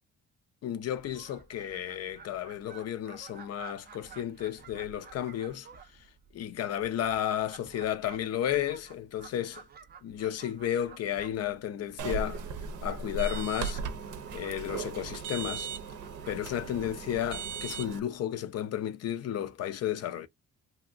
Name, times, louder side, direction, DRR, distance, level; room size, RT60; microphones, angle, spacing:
voice 1, 0.6-5.7 6.3-9.6 10.0-12.4 12.8-13.8 14.3-15.7 16.3-20.3, left 11 dB, 55° left, 0.5 m, -33 dB
Fowl, 0.8-18.2, right 7 dB, 35° right, 0.4 m, -53 dB
sound 1, 12.0-18.0, right 5 dB, 80° right, 0.6 m, -37 dB
2.8 x 2.5 x 2.4 m
cardioid pair, 90°, 30 cm